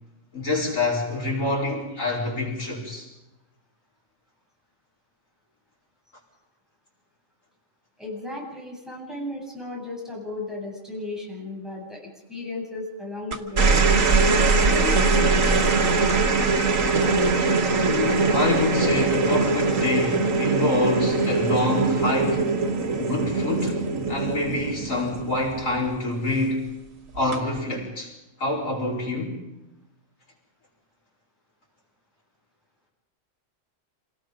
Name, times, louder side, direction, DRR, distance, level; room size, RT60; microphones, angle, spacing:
voice 1, 0.3-3.1 17.8-22.5 23.0-26.7 27.1-28.1 28.4-29.4, left 2 dB, 90° left, 5.0 m, -26 dB
voice 2, 8.0-13.7 14.3-17.0, left 2 dB, ahead, 7.9 m, -34 dB
sound 1, 13.3-25.9 27.1-27.6, right 4 dB, 85° right, 2.0 m, -22 dB
27.0 x 18.5 x 5.3 m
omnidirectional pair, 1.3 m